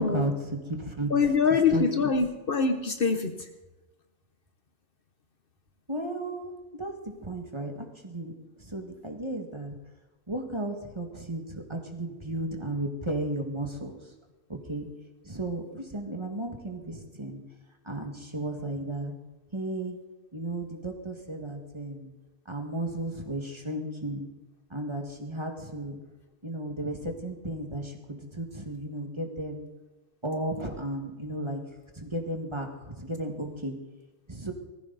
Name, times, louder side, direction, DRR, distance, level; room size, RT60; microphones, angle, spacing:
voice 1, 0.0-1.1 1.5-2.1 5.9-9.8 10.3-14.1 14.5-14.9 15.2-17.4 17.8-19.1 19.5-20.0 20.3-22.1 22.5-24.3 24.7-26.0 26.4-29.7 30.2-31.6 31.9-32.7 33.0-33.8 34.3-34.5, right 1 dB, 25° right, 3 dB, 1.9 m, -34 dB
voice 2, 1.1-3.5, left 5 dB, 55° left, 7 dB, 1.2 m, -24 dB
19.0 x 15.0 x 4.0 m, 1.1 s
omnidirectional pair, 1.2 m